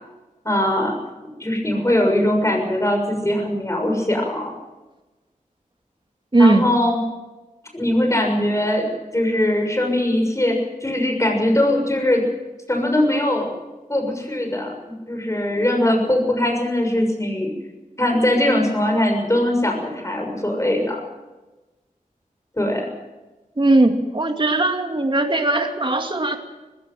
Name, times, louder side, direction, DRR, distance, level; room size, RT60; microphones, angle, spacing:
voice 1, 0.4-1.0 1.4-4.5 6.4-7.0 7.7-12.2 12.7-13.5 13.9-17.5 18.0-21.0 22.6-22.9, left 1 dB, 20° left, 2 dB, 6.7 m, -21 dB
voice 2, 6.3-6.6 23.6-26.4, right 2 dB, 35° right, 5 dB, 2.4 m, -18 dB
20.5 x 16.5 x 9.1 m, 1.1 s
wide cardioid pair, 60°, 14 cm